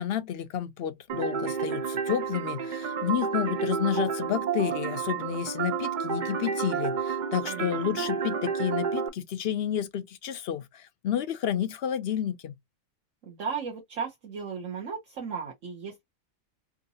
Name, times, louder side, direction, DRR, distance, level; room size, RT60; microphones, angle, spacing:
voice 1, 0.0-12.5, left 9 dB, 60° left, 0.7 m, -30 dB
sound 1, 1.1-9.1, right 6 dB, 50° right, 0.6 m, -30 dB
voice 2, 7.4-8.1 13.2-16.0, right 6 dB, 65° right, 1.4 m, -36 dB
3.6 x 2.8 x 2.7 m
omnidirectional pair, 1.4 m